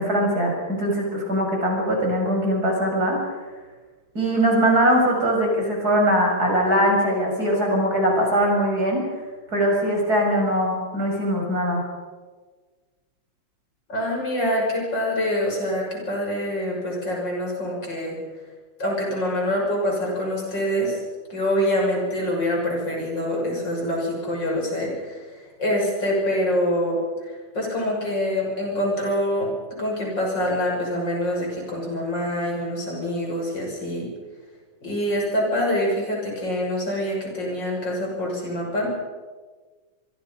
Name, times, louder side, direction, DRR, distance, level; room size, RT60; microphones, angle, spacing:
voice 1, 0.0-3.2 4.2-9.0 9.5-11.8, equal, 45° right, 0 dB, 7.0 m, -21 dB
voice 2, 13.9-18.2 18.8-21.0 21.3-25.2 25.6-27.0 27.3-29.5 29.8-34.1 34.8-38.9, left 1 dB, 55° left, -1 dB, 7.1 m, -25 dB
26.0 x 24.0 x 5.4 m, 1.4 s
omnidirectional pair, 2.4 m